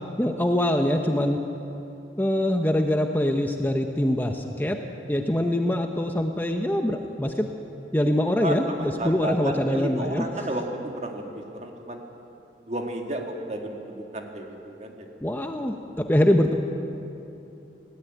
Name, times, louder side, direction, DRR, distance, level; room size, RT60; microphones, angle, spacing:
voice 1, 0.2-1.4 2.2-4.8 5.1-7.5 7.9-10.5 15.2-16.5, left 1 dB, 10° left, 4 dB, 0.9 m, -24 dB
voice 2, 8.4-12.0 12.7-15.1, right 1 dB, 40° right, 2 dB, 2.3 m, -32 dB
20.0 x 17.0 x 9.2 m, 2.9 s
head